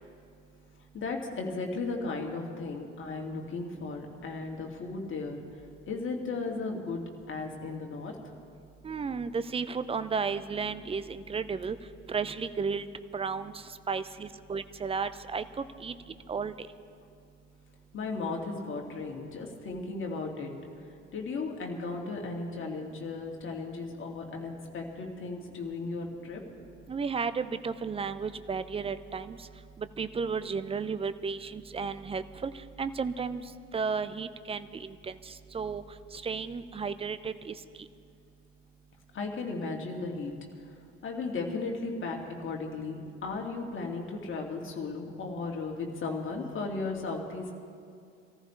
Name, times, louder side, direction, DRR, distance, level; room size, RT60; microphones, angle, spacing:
voice 1, 0.9-7.0 7.3-8.2 17.9-20.5 20.8-26.4 39.1-40.3 41.0-47.5, left 3 dB, 30° left, 0 dB, 2.4 m, -36 dB
voice 2, 8.8-11.8 12.1-12.8 13.1-13.5 13.9-15.9 16.3-16.5 26.9-29.4 30.0-32.5 32.8-33.4 33.7-34.9 35.5-35.8 36.2-37.5, right 5 dB, 15° right, 13 dB, 0.6 m, -33 dB
24.5 x 14.5 x 3.3 m, 2.4 s
figure-of-eight pair, 65°, 38 cm